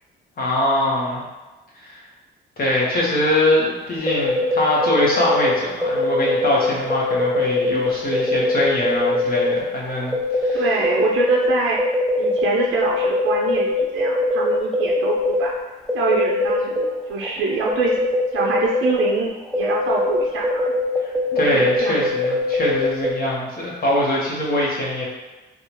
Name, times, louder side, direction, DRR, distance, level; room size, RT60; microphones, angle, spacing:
voice 1, 0.4-1.2 1.8-2.0 2.6-10.6 21.0-25.0, left 1 dB, 50° left, -4 dB, 1.2 m, -22 dB
sound 1, 4.1-5.5 5.8-9.5 9.9-11.5 11.8-15.4 15.9-16.9 17.2-17.3 17.7-19.1 19.5-23.1, left 2 dB, ahead, 0.5 m, -21 dB
voice 2, 10.5-11.8 12.2-15.5 15.9-18.0 18.3-20.7 21.3-22.0, right 4 dB, 80° right, -2 dB, 0.5 m, -25 dB
3.6 x 2.3 x 3.0 m, 1.1 s
cardioid pair, 90°, 20 cm